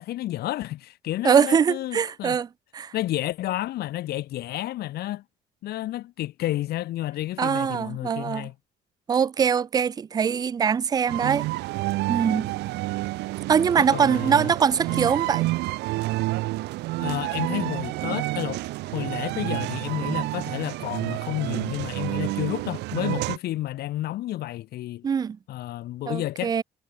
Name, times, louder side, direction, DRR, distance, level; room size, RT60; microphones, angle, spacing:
voice 1, 0.0-2.4 2.9-5.2 5.6-8.5 13.8-14.5 14.9-15.0 17.0-25.1 25.5-26.5, left 15 dB, 70° left, 1.2 m, -31 dB
voice 2, 1.2-2.5 2.7-2.9 7.4-8.5 9.1-11.5 12.1-12.5 13.5-15.4 25.0-25.4 26.1-26.6, right 7 dB, 25° right, 0.3 m, -22 dB
sound 1, 11.1-23.4, right 20 dB, 85° right, 1.1 m, -29 dB
cardioid pair, 110°, 17 cm